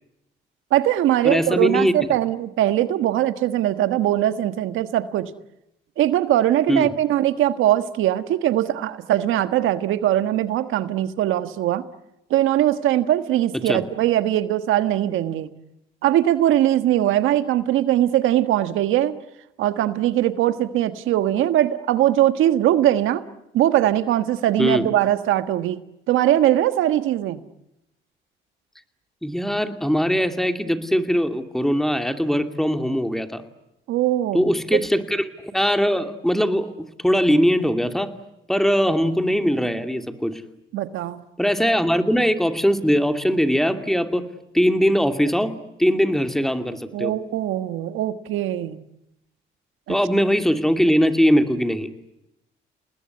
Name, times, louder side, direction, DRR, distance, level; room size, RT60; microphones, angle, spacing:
voice 1, 0.7-5.3 6.0-11.8 12.3-15.5 16.0-19.2 19.6-23.2 23.5-25.8 26.1-27.4 33.9-34.5 40.7-41.2 46.9-48.9 49.9-50.0, right 12 dB, 90° right, 11 dB, 1.5 m, -21 dB
voice 2, 1.2-1.9 6.7-6.9 13.6-13.8 24.6-24.9 29.2-33.4 34.3-38.1 38.5-40.4 41.4-44.2 44.5-47.1 49.9-51.9, equal, ahead, 7 dB, 2.6 m, -21 dB
29.5 x 20.0 x 9.7 m, 0.88 s
cardioid pair, 90°, 20 cm